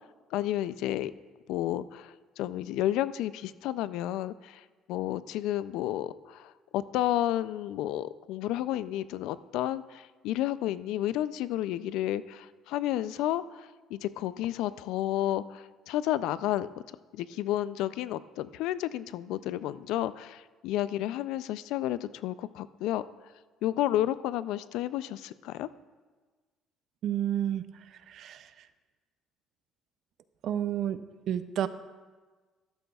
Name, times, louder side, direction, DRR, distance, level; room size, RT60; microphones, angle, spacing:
voice 1, 0.3-1.1 1.5-16.7 17.1-23.0 23.6-25.7, left 13 dB, 75° left, 16 dB, 0.3 m, -31 dB
voice 2, 27.0-27.6 27.9-28.5 30.4-31.0 31.3-31.7, right 10 dB, 50° right, 13 dB, 0.4 m, -30 dB
13.5 x 12.0 x 2.3 m, 1.3 s
cardioid pair, 175°, 0 cm